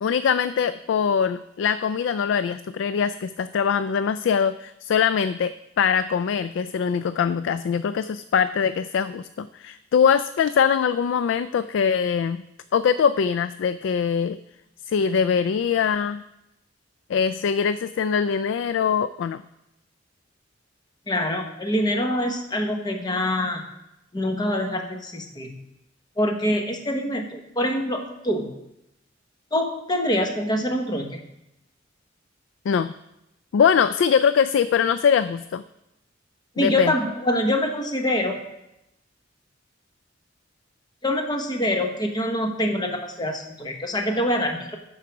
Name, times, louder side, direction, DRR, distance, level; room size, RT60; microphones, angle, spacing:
voice 1, 0.0-12.4 12.7-14.4 14.9-16.2 17.1-19.4 32.7-32.9 33.5-35.6 36.6-36.9, left 7 dB, 70° left, 13 dB, 0.3 m, -22 dB
voice 2, 21.1-23.6 24.1-25.6 26.2-28.5 29.5-31.2 36.6-38.4 41.0-44.8, left 1 dB, 20° left, 3 dB, 1.1 m, -25 dB
12.5 x 4.8 x 5.9 m, 0.87 s
head